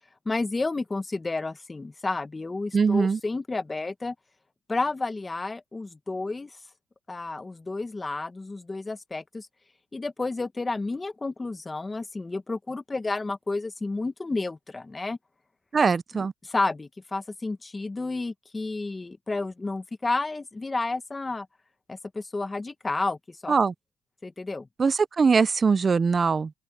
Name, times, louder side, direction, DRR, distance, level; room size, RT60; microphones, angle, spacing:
voice 1, 0.2-4.1 4.7-6.5 7.1-9.5 9.9-15.2 16.1-21.5 21.9-23.5 24.2-24.7, left 3 dB, 20° left, 1.3 m, -31 dB
voice 2, 2.7-3.2 15.7-16.3 23.5-23.7 24.8-26.5, right 5 dB, 35° right, 0.5 m, -22 dB
open air
cardioid pair, 90°, 0 cm